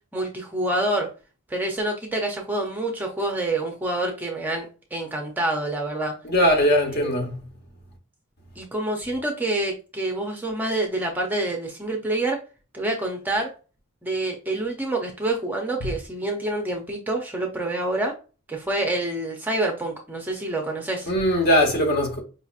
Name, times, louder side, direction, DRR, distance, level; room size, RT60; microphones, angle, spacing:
voice 1, 0.1-1.1 1.5-6.1 6.9-7.2 8.6-12.4 12.7-13.5 14.0-18.1 18.5-21.1, right 2 dB, 10° right, 0.5 m, -27 dB
voice 2, 6.2-7.4 21.1-22.2, equal, 45° left, 1.1 m, -20 dB
5.1 x 2.8 x 2.4 m
head